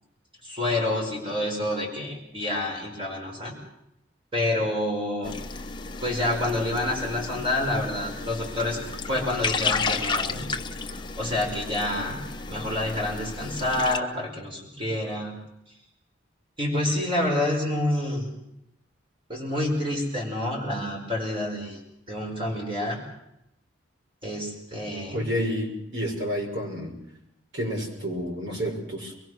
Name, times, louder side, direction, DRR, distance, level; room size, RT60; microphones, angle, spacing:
voice 1, 0.4-3.5 4.3-5.3 6.0-10.4 10.9-12.2 12.5-15.4 16.6-18.3 19.3-21.8 22.1-23.0 24.2-25.3, left 1 dB, 25° right, -1 dB, 4.9 m, -28 dB
sound 1, 5.2-14.0, left 4 dB, 25° left, 1.1 m, -32 dB
voice 2, 25.1-26.9 27.5-29.1, equal, 65° right, 0 dB, 6.2 m, -30 dB
24.0 x 22.0 x 6.3 m, 0.81 s
head